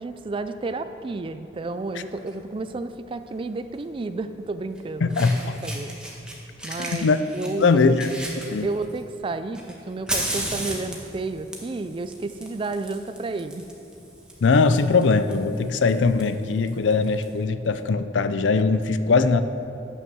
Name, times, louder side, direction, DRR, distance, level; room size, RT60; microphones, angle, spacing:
voice 1, 0.0-5.4 5.6-5.9 6.6-8.0 8.6-13.7, right 3 dB, 30° right, 11 dB, 0.3 m, -31 dB
Fire, 2.1-2.3 3.7-3.8 4.8-4.9 5.1-6.3 6.6-9.0 9.5-17.2, right 1 dB, 5° right, 1.1 m, -35 dB
voice 2, 5.0-5.6 6.9-7.2 7.6-8.1 8.5-8.7 14.4-19.4, left 4 dB, 80° left, 11 dB, 0.5 m, -20 dB
9.3 x 6.2 x 6.2 m, 2.7 s
head